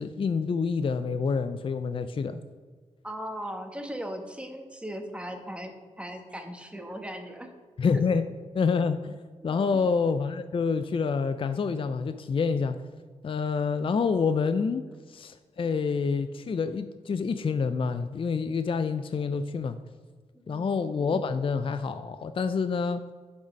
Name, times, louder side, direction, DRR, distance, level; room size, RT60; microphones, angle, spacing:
voice 1, 0.0-2.4 7.8-8.2 8.5-12.8 13.2-14.8 15.1-19.8 20.5-23.0, left 5 dB, 40° left, 10 dB, 0.4 m, -27 dB
voice 2, 3.0-7.5 9.4-9.8 14.9-15.0 20.5-20.7, equal, 10° right, 4 dB, 1.1 m, -38 dB
6.9 x 3.9 x 5.2 m, 1.5 s
supercardioid pair, 40°, 14 cm